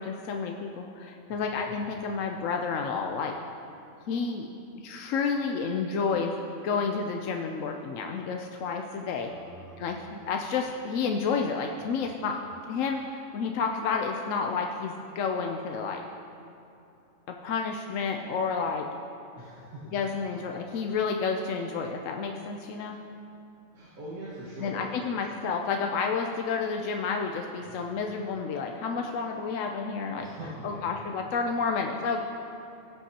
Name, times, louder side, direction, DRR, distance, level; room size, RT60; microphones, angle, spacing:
voice 1, 0.0-3.3 4.1-4.5 4.7-6.4 6.6-9.3 9.8-12.4 12.7-16.0 17.3-18.9 19.9-23.0 24.6-30.3 30.6-32.2, left 5 dB, 70° left, 3 dB, 0.9 m, -30 dB
voice 2, 9.2-10.0 11.8-11.9 19.4-19.9 23.7-24.9 27.6-27.8 30.1-31.0, right 1 dB, 80° right, -8 dB, 2.1 m, -43 dB
16.5 x 8.0 x 2.9 m, 2.8 s
omnidirectional pair, 1.5 m